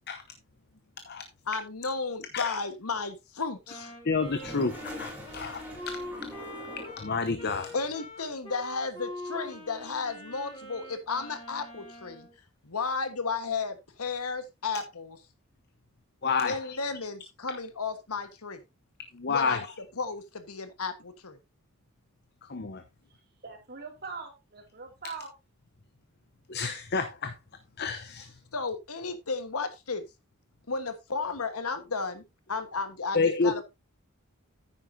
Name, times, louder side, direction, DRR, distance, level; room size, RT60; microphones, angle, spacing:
voice 1, 1.5-3.9 7.7-12.3 12.6-15.2 16.4-18.6 19.3-19.6 20.0-21.4 28.5-30.1 30.7-32.2 32.5-33.6, left 4 dB, 85° left, 1.4 m, -33 dB
Wind instrument woodwind instrument, 3.7-12.3, left 1 dB, 20° left, 3.8 m, -43 dB
voice 2, 4.0-5.7 7.0-7.7 16.2-16.6 19.1-19.7 22.4-22.8 26.5-27.4 27.8-28.4 33.1-33.6, left 4 dB, 45° left, 0.8 m, -29 dB
Toilet flush, 4.1-7.2, left 1 dB, 5° right, 3.3 m, -43 dB
voice 3, 23.1-25.3, right 4 dB, 45° right, 2.6 m, -42 dB
9.7 x 9.4 x 2.7 m
head